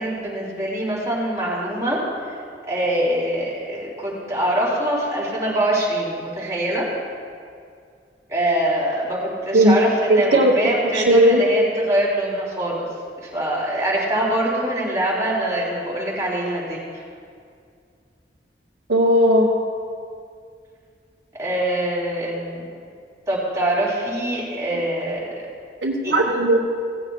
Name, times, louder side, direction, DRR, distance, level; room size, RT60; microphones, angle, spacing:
voice 1, 0.0-2.0 2.7-6.9 8.3-12.9 13.2-16.8 21.3-22.7 23.3-25.3 26.0-26.2, right 1 dB, 20° right, -6 dB, 3.4 m, -24 dB
voice 2, 10.1-10.6 10.9-11.4 18.9-19.5 24.7-24.8 25.8-26.6, right 1 dB, 85° right, -4 dB, 1.4 m, -16 dB
17.0 x 15.0 x 2.4 m, 2.2 s
head